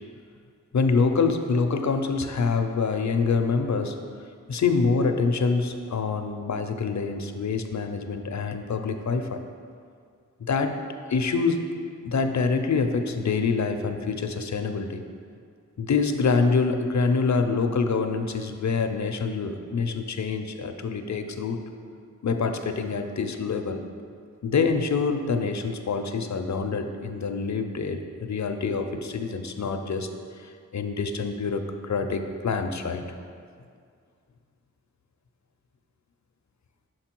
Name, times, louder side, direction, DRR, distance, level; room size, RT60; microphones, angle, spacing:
voice 1, 0.7-4.0 4.5-9.4 10.4-10.8 11.1-11.7 12.0-15.0 15.8-21.6 22.2-23.8 24.4-30.1 30.4-33.0, left 4 dB, 65° left, 6 dB, 0.5 m, -26 dB
6.4 x 4.5 x 4.4 m, 2.2 s
wide cardioid pair, 70°, 31 cm